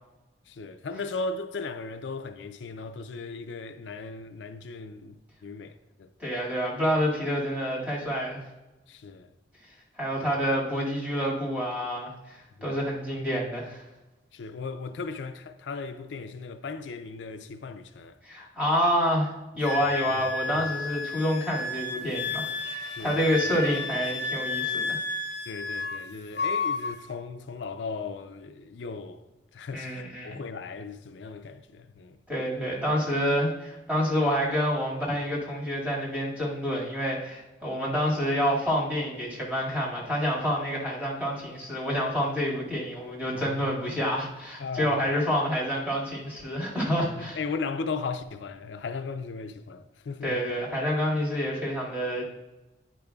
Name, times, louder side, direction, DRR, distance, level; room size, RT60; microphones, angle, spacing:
voice 1, 0.5-6.1 8.9-9.3 12.6-12.8 14.3-18.2 19.8-20.3 20.6-20.7 22.9-23.2 25.5-29.2 29.5-32.2 43.3-43.7 44.6-45.1 47.2-50.4, left 4 dB, 90° left, 0.5 m, -37 dB
voice 2, 6.2-8.4 10.0-13.8 18.2-25.0 29.7-30.4 32.3-47.4 50.2-52.2, equal, 10° right, 2.0 m, -28 dB
Wind instrument woodwind instrument, 19.6-26.1 26.4-27.0, left 3 dB, 70° left, 0.9 m, -32 dB
10.0 x 5.1 x 2.3 m
head